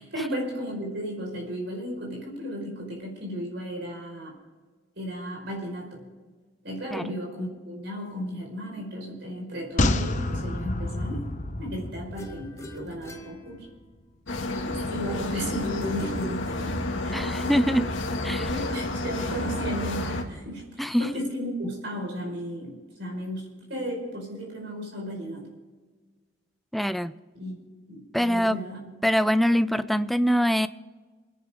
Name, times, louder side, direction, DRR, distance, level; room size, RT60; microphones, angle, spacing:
voice 1, 0.0-4.4 5.0-6.0 6.6-11.3 11.6-13.7 14.6-17.7 18.5-25.5 27.3-27.6 27.9-28.8, equal, 65° right, 0 dB, 5.2 m, -35 dB
sound 1, 9.8-13.2 13.5-13.6, left 2 dB, 40° left, 0.9 m, -29 dB
sound 2, 12.2-14.1 15.6-17.1, left 1 dB, 15° left, 1.3 m, -40 dB
sound 3, 14.3-20.2, left 1 dB, 80° left, 2.2 m, -30 dB
voice 2, 17.1-17.9 18.2-18.5 20.8-21.1 26.7-27.2 28.1-28.6 29.0-30.7, equal, ahead, 13 dB, 0.4 m, -24 dB
28.0 x 10.5 x 3.8 m, 1.4 s
head